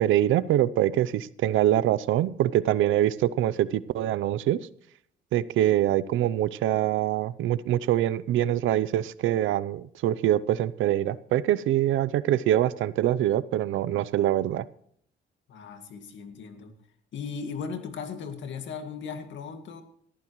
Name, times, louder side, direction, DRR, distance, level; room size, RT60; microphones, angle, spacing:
voice 1, 0.0-4.6 5.3-14.7, right 12 dB, 80° right, 18 dB, 0.6 m, -24 dB
voice 2, 15.5-16.7 17.1-19.8, left 6 dB, 70° left, 6 dB, 2.1 m, -37 dB
19.0 x 13.5 x 3.1 m, 0.64 s
cardioid pair, 90°, 20 cm